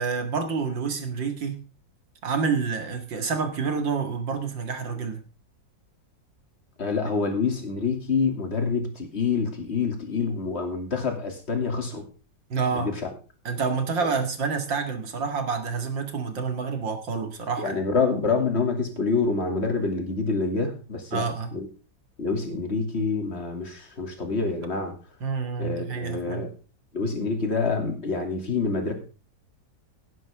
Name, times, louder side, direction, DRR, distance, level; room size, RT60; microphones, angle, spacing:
voice 1, 0.0-1.6 2.2-5.2 12.5-12.9 13.4-17.8 21.1-21.5 25.2-26.5, right 5 dB, 80° right, 2.8 m, -28 dB
voice 2, 6.8-12.0 12.7-12.9 14.0-14.1 17.6-21.7 22.2-24.9 25.6-26.5 26.9-28.9, left 4 dB, 35° left, 2.9 m, -27 dB
16.0 x 11.0 x 3.6 m
omnidirectional pair, 2.0 m